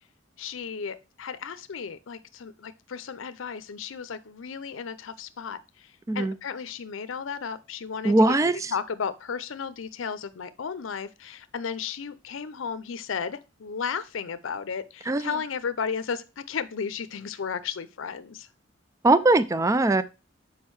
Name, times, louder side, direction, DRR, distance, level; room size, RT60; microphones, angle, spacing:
voice 1, 0.4-8.4 8.7-18.5, left 6 dB, 85° left, 13 dB, 0.5 m, -34 dB
voice 2, 8.0-8.7 15.1-15.3 19.0-20.0, right 2 dB, 15° right, 15 dB, 0.3 m, -21 dB
6.4 x 4.7 x 4.6 m, 0.29 s
head